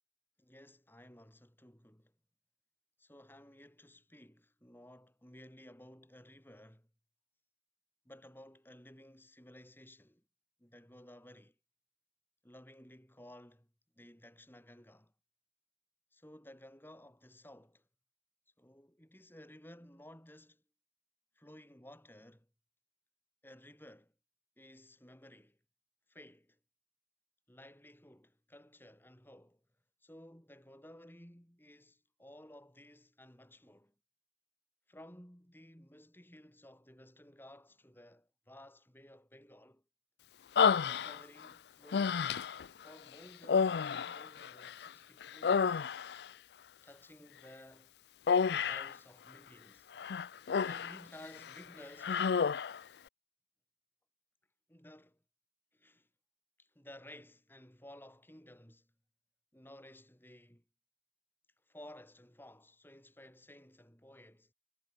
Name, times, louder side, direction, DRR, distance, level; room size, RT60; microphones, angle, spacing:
voice 1, 0.4-2.1 3.0-6.9 8.0-10.2 10.6-11.5 12.4-13.7 14.0-15.1 16.1-17.8 18.6-20.6 21.3-22.5 23.4-24.1 24.6-25.6 26.1-26.6 27.5-29.6 30.0-33.9 34.9-39.8 40.7-42.3 42.8-45.8 46.8-47.9 48.5-49.9 50.6-52.3 54.7-55.2 55.7-56.1 56.6-58.9 59.5-60.6 61.7-64.5, left 1 dB, 10° left, 5.0 m, -56 dB
Human voice, 40.6-41.5 41.9-42.7 43.4-44.9 45.2-46.3 48.3-49.0 50.0-51.0 51.3-51.6 52.0-52.8, left 6 dB, 70° left, 0.4 m, -30 dB
head